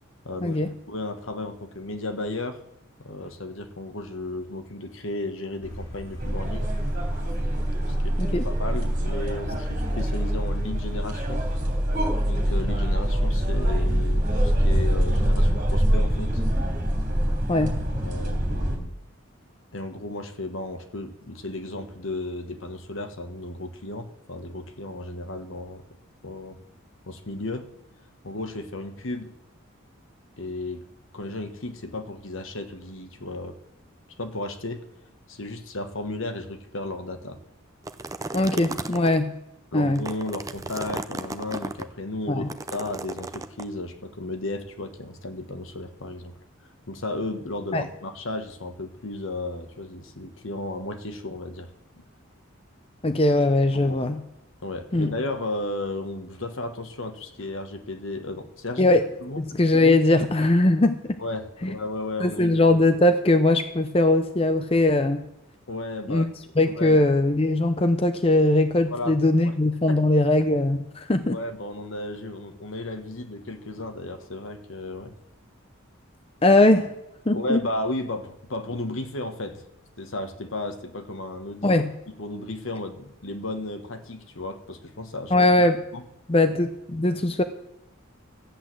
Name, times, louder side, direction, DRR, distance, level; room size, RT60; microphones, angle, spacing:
voice 1, 0.2-2.6 3.0-6.7 7.9-11.5 12.2-16.4 18.0-18.9 19.7-25.8 26.2-26.6 27.1-27.7 28.2-29.3 30.4-30.9 31.1-33.6 34.2-34.9 35.3-37.4 39.7-46.3 46.9-51.7 53.7-54.0 54.6-58.9 59.2-59.4 60.4-60.5 61.2-62.6 65.7-66.2 66.7-67.1 68.9-69.1 69.4-69.5 69.9-70.0 71.3-75.1 77.3-79.6 80.0-81.7 82.2-85.5 85.9-86.0, left 2 dB, 70° left, 8 dB, 1.4 m, -34 dB
sound 1, 5.6-10.7, left 1 dB, 90° left, 5.0 m, -39 dB
sound 2, 6.2-18.8, equal, 40° right, 3.0 m, -24 dB
sound 3, 37.8-39.2 39.8-41.8 42.5-43.6, right 3 dB, 15° right, 0.5 m, -34 dB
voice 2, 38.3-39.3 39.7-40.0 42.3-42.5 47.7-47.8 53.0-54.2 54.9-55.1 58.8-59.0 59.4-61.2 61.6-61.7 62.2-65.2 66.1-66.3 66.6-71.4 76.4-76.9 77.3-77.6 81.6-81.9 85.3-85.8 86.3-87.4, left 2 dB, 25° left, 9 dB, 0.6 m, -20 dB
13.5 x 8.3 x 7.6 m, 0.87 s
head